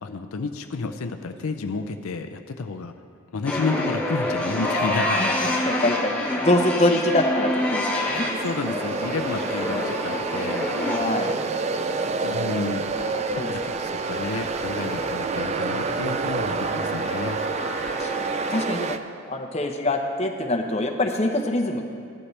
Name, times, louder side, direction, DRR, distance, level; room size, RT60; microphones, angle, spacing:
voice 1, 0.0-2.9 3.3-5.2 6.9-7.0 8.4-10.7 12.2-12.9 13.3-17.4, left 4 dB, 75° left, 7 dB, 0.5 m, -31 dB
sound 1, 3.5-18.7, left 1 dB, 5° left, 1.1 m, -29 dB
voice 2, 5.1-6.2 6.4-8.3 10.8-11.3 13.0-13.5 17.5-18.1 18.5-19.0 19.3-21.8, left 1 dB, 30° left, 3 dB, 0.8 m, -25 dB
sound 2, 7.9-19.0, right 4 dB, 30° right, 0.3 m, -28 dB
15.5 x 11.5 x 3.3 m, 2.2 s
head